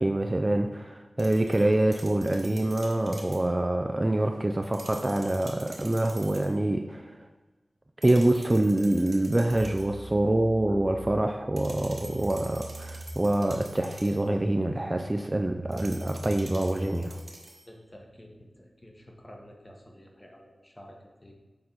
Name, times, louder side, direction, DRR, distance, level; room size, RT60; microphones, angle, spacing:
voice 1, 0.0-7.2 8.0-17.2, right 1 dB, 25° right, 4 dB, 0.4 m, -26 dB
sound 1, 1.2-3.5 4.6-6.6 8.0-10.0 11.6-14.3 15.7-17.7, right 1 dB, 45° right, 1.2 m, -47 dB
sound 2, 9.5-17.0, right 1 dB, 60° right, 0.8 m, -41 dB
voice 2, 17.7-21.3, equal, 25° left, 1 dB, 1.1 m, -50 dB
6.7 x 4.2 x 3.9 m, 1.3 s
wide cardioid pair, 70°, 0 cm